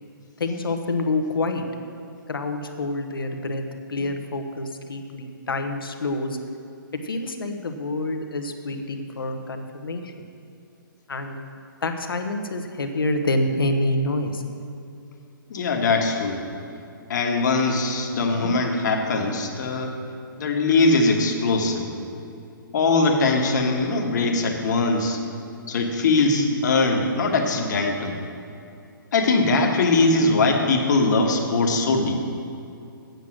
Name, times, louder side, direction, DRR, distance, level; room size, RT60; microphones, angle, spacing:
voice 1, 0.4-1.7 2.3-3.6 3.9-6.4 6.9-10.1 11.1-11.4 11.8-14.4 18.4-18.6, left 2 dB, 85° left, 6 dB, 1.1 m, -27 dB
voice 2, 15.5-16.4 17.1-19.9 20.4-21.9 22.7-25.2 25.7-28.2 29.1-32.1, left 3 dB, 55° left, 2 dB, 1.4 m, -21 dB
9.2 x 7.9 x 6.4 m, 2.7 s
hypercardioid pair, 145°, 12 cm